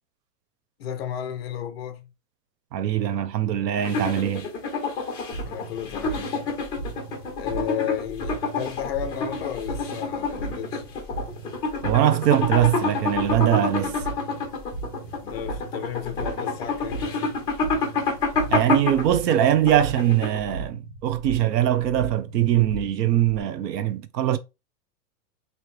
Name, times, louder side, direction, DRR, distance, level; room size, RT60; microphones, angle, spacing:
voice 1, 0.8-2.1 5.4-6.3 7.4-10.8 15.2-17.4, left 10 dB, 40° left, 0.5 m, -33 dB
voice 2, 2.7-4.5 11.8-14.0 18.5-24.4, right 11 dB, 85° right, 0.7 m, -22 dB
sound 1, 3.8-20.6, left 3 dB, 10° left, 0.8 m, -28 dB
sound 2, 5.3-23.4, right 3 dB, 15° right, 0.5 m, -38 dB
3.1 x 2.8 x 3.1 m
supercardioid pair, 170°, 49 cm